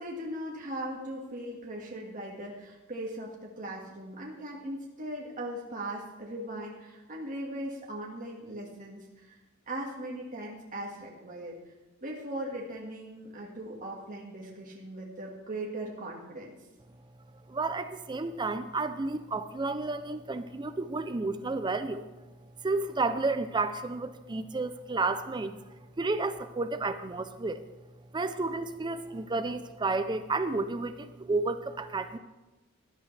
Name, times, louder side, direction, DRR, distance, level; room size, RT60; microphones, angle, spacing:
voice 1, 0.0-9.4 9.7-11.6 12.0-16.5, right 1 dB, 40° right, -2 dB, 1.7 m, -39 dB
voice 2, 17.5-22.1 22.6-25.6 26.0-27.6 28.1-32.2, right 3 dB, 20° right, 10 dB, 0.5 m, -31 dB
19.0 x 11.5 x 3.3 m, 1.1 s
head